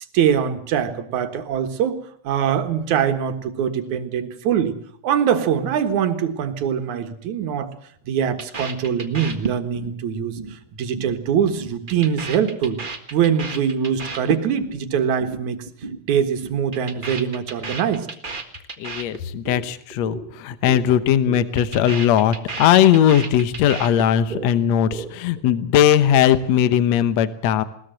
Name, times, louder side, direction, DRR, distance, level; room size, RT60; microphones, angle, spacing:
voice 1, 0.1-2.0 2.2-4.8 5.0-7.7 8.1-12.8 13.1-15.6 16.1-18.1, right 8 dB, 75° right, 8 dB, 2.9 m, -23 dB
sound 1, 8.4-9.9 10.2-10.5 10.8-11.2 11.4-14.8 15.1-15.4 15.7-16.0 16.3-19.6 19.9-20.2 20.5-20.8 21.1-24.5 24.7-25.4, right 3 dB, 25° right, 1.0 m, -32 dB
voice 2, 18.8-27.6, left 10 dB, 65° left, 13 dB, 2.1 m, -18 dB
20.5 x 19.0 x 7.7 m, 0.64 s
omnidirectional pair, 3.5 m